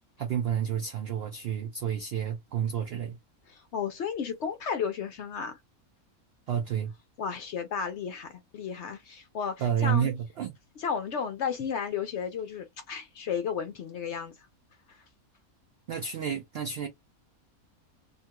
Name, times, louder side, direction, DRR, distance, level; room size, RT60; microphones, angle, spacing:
voice 1, 0.2-3.2 6.5-6.9 9.6-10.5 15.9-16.9, right 8 dB, 70° right, 0.6 m, -30 dB
voice 2, 3.5-5.6 7.2-10.1 10.8-14.3 14.9-15.0, left 7 dB, 65° left, 0.7 m, -33 dB
2.8 x 2.2 x 2.8 m
omnidirectional pair, 1.5 m